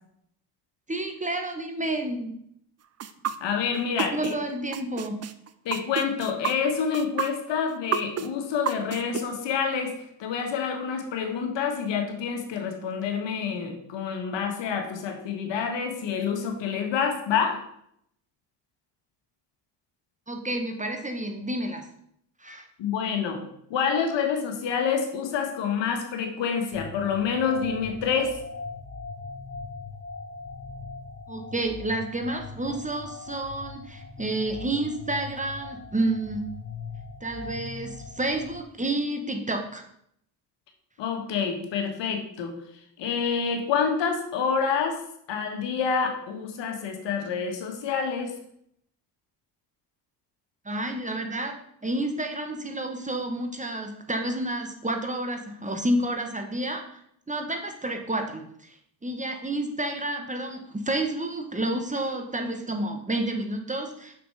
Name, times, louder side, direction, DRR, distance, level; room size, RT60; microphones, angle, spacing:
voice 1, 0.9-2.4 4.1-5.2 20.3-21.9 22.4-22.7 31.3-36.4 37.2-39.8 50.6-51.5 51.8-57.0 57.3-58.8 59.0-64.1, right 1 dB, 15° right, 4 dB, 1.3 m, -30 dB
sound 1, 3.0-4.3 4.7-9.2, right 8 dB, 35° right, 0.6 m, -29 dB
voice 2, 3.4-4.3 5.6-9.9 10.2-17.6 22.8-28.4 41.0-42.5 43.0-45.0 45.3-48.4, left 6 dB, 70° left, 4 dB, 1.7 m, -27 dB
sound 2, 26.7-38.6, left 4 dB, 25° left, 1.5 m, -40 dB
6.1 x 6.0 x 4.9 m, 0.71 s
supercardioid pair, 75°, 45 cm